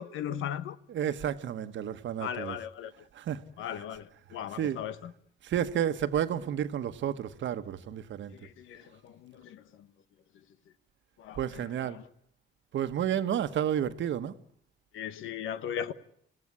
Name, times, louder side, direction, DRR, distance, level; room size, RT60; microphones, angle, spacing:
voice 1, 0.0-0.8 2.2-2.9 3.6-5.1 8.3-9.9 11.2-11.4 11.9-12.0 14.9-15.9, left 9 dB, 85° left, 1.2 m, -37 dB
voice 2, 0.9-2.6 3.1-3.8 4.3-4.8 5.4-8.3 11.4-12.0 12.7-14.3, right 9 dB, 70° right, 1.3 m, -31 dB
26.5 x 17.0 x 9.8 m
cardioid pair, 90°, 20 cm